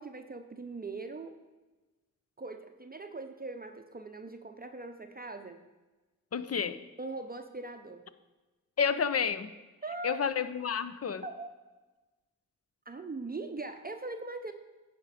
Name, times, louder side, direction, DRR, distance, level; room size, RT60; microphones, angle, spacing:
voice 1, 0.0-1.3 2.4-5.6 7.0-8.0 9.8-10.2 11.2-11.5 12.9-14.5, right 3 dB, 25° right, 7 dB, 0.6 m, -41 dB
voice 2, 6.3-6.8 8.8-9.5 10.0-11.2, left 6 dB, 45° left, 13 dB, 0.6 m, -30 dB
9.8 x 5.2 x 4.8 m, 1.2 s
cardioid pair, 40°, 34 cm